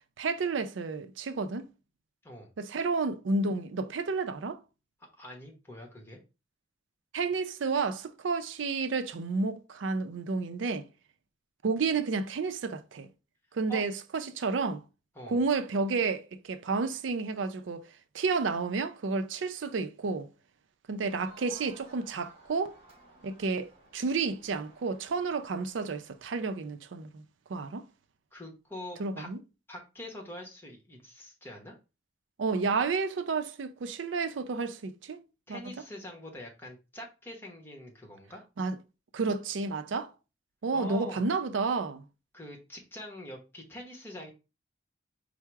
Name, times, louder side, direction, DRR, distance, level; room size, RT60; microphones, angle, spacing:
voice 1, 0.2-1.7 2.6-4.6 7.1-10.9 11.6-13.1 13.5-14.8 15.3-17.9 18.1-20.3 20.9-22.7 23.2-27.2 27.5-27.9 29.0-29.4 32.4-35.2 35.5-35.6 38.6-38.8 39.1-40.1 40.6-42.0, right 4 dB, 85° right, 0.5 m, -31 dB
voice 2, 5.2-6.2 13.7-13.8 15.1-15.4 28.3-29.3 29.7-31.8 35.5-38.4 40.7-41.2 42.3-44.3, equal, 10° left, 1.0 m, -44 dB
Crowd, 21.0-26.3, right 2 dB, 30° right, 1.2 m, -57 dB
4.5 x 2.0 x 4.5 m
head